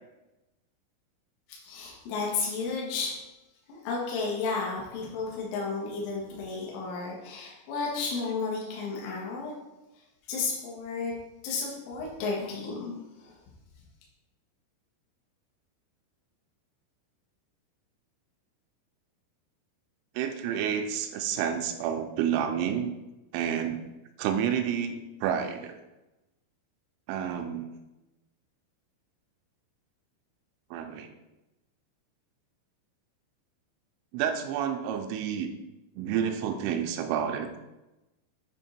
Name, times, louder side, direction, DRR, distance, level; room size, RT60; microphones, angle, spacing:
voice 1, 1.5-3.2 3.7-9.5 10.3-11.1 11.4-12.9 13.2-13.3, left 4 dB, 70° left, -4 dB, 3.7 m, -32 dB
voice 2, 20.2-22.9 23.3-23.8 24.2-25.8 27.1-27.7 30.7-31.1 34.1-35.5 36.0-37.5, right 8 dB, 85° right, 6 dB, 3.0 m, -29 dB
9.4 x 3.6 x 4.3 m, 1.0 s
omnidirectional pair, 5.9 m